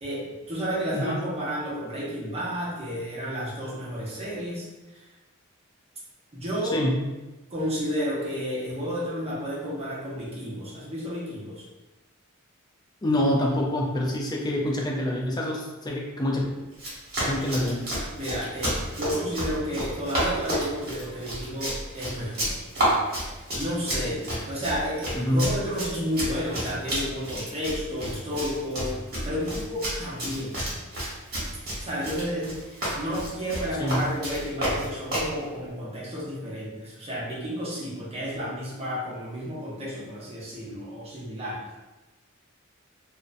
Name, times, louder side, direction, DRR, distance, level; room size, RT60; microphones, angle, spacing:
voice 1, 0.0-5.0 6.3-6.8 7.5-11.6 18.2-22.5 23.5-30.6 31.8-32.6 33.0-41.6, equal, 30° right, -7 dB, 0.7 m, -31 dB
voice 2, 13.0-16.4 17.3-17.8 25.1-25.5 33.8-34.0, left 1 dB, 20° left, -2 dB, 0.4 m, -26 dB
Run, 16.7-35.3, right 1 dB, 50° right, 1.0 m, -31 dB
2.5 x 2.1 x 2.5 m, 1.1 s
head